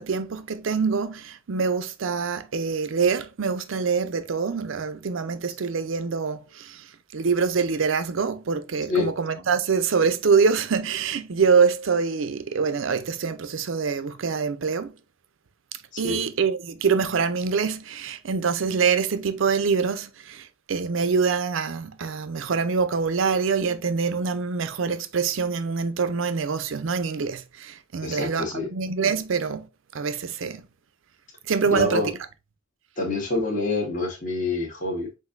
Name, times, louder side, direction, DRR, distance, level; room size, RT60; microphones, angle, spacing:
voice 1, 0.0-6.8 7.1-15.0 16.0-28.5 28.7-29.7 29.9-30.6 31.5-32.0, right 5 dB, 75° right, 0.5 m, -25 dB
voice 2, 28.0-28.7 31.6-32.1 33.0-35.2, left 3 dB, 40° left, 1.3 m, -27 dB
5.8 x 2.6 x 2.5 m
head